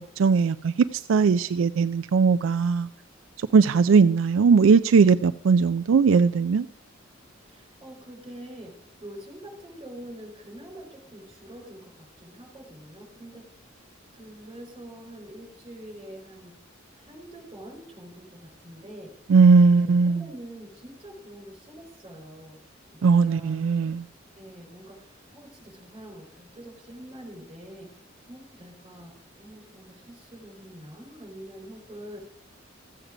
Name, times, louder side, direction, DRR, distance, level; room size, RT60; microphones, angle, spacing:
voice 1, 0.2-2.9 3.4-6.7 19.3-20.2 23.0-24.0, right 5 dB, 75° right, 0.4 m, -19 dB
voice 2, 7.4-13.9 14.1-16.5 16.9-19.1 19.5-22.6 22.9-23.6 24.4-32.2, right 1 dB, 25° right, 4.6 m, -45 dB
14.0 x 8.0 x 5.0 m
head